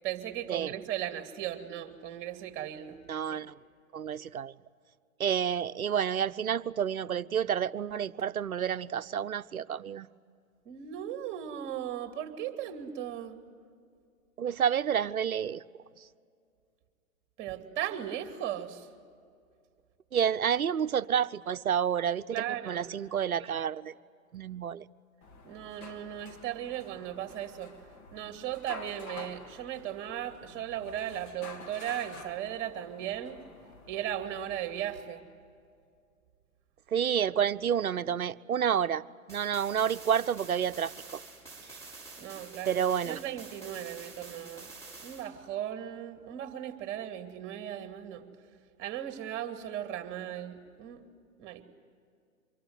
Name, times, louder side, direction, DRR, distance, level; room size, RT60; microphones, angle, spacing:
voice 1, 0.0-3.0 3.3-3.4 10.7-13.4 17.4-18.9 22.3-22.9 25.4-27.7 28.1-33.4 33.9-35.2 42.2-44.7 45.0-48.2 48.8-51.0 51.4-51.6, right 11 dB, 25° right, 2.6 m, -37 dB
voice 2, 3.1-3.5 3.9-4.5 5.2-10.1 14.4-15.6 20.1-23.9 24.3-24.8 36.9-39.0 39.3-41.2 42.7-43.2, right 8 dB, 80° right, 0.8 m, -29 dB
sound 1, 25.2-35.0, left 3 dB, 35° left, 3.1 m, -49 dB
sound 2, 39.3-45.3, right 3 dB, 5° left, 7.3 m, -48 dB
25.0 x 23.0 x 9.7 m
figure-of-eight pair, 120°, 42 cm